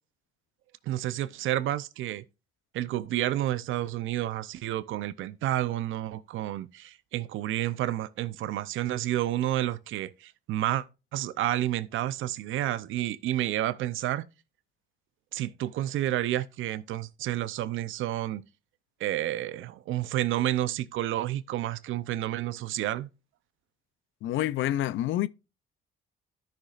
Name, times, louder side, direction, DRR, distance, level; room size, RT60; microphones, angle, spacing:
voice 1, 0.9-2.2 2.7-10.8 11.1-14.3 15.3-18.4 19.0-23.1, right 13 dB, 80° right, 0.6 m, -30 dB
voice 2, 24.2-25.3, left 13 dB, 80° left, 0.5 m, -27 dB
13.5 x 5.9 x 2.5 m
cardioid pair, 90°, 20 cm